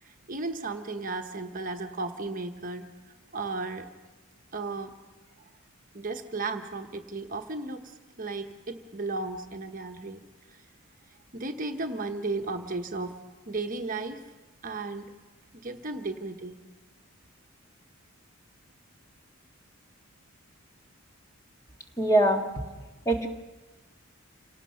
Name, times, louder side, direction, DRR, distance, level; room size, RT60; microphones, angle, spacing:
voice 1, 0.0-2.9 3.3-3.9 4.5-4.9 5.9-10.2 10.5-10.6 11.3-13.2 13.5-14.3 14.6-15.1 15.5-16.6, right 3 dB, 40° right, 5 dB, 1.1 m, -35 dB
voice 2, 22.0-22.5 23.0-23.3, right 1 dB, 15° left, 3 dB, 1.7 m, -22 dB
27.5 x 18.5 x 5.7 m, 1.2 s
head